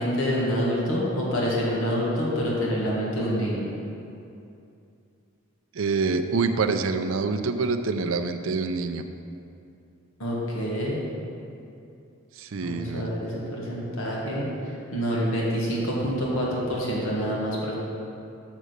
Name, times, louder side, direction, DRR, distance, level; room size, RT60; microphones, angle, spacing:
voice 1, 0.0-3.7 10.2-11.0 12.6-14.5 14.9-17.7, equal, 80° left, -5 dB, 1.6 m, -27 dB
voice 2, 5.7-9.0 12.4-13.1, right 4 dB, 75° right, 8 dB, 0.5 m, -26 dB
6.5 x 6.1 x 6.6 m, 2.6 s
head